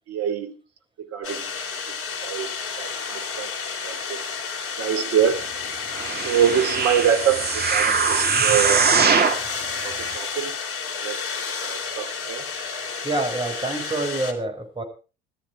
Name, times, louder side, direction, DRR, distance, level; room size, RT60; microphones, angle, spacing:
voice 1, 0.1-0.5 1.0-1.5 1.9-3.5 3.8-4.2 4.8-5.5 6.2-8.9 9.3-9.6 9.8-10.5 11.0-11.2 11.6-12.5, right 8 dB, 50° right, 9 dB, 2.8 m, -25 dB
sound 1, 1.2-14.3, left 5 dB, 45° left, 3.5 m, -31 dB
sound 2, 5.9-9.5 10.1-10.2, right 5 dB, 30° right, 2.4 m, -21 dB
voice 2, 13.0-14.8, right 2 dB, 15° right, 4 dB, 5.8 m, -27 dB
17.0 x 13.0 x 4.7 m, 0.35 s
hypercardioid pair, 65°, 30 cm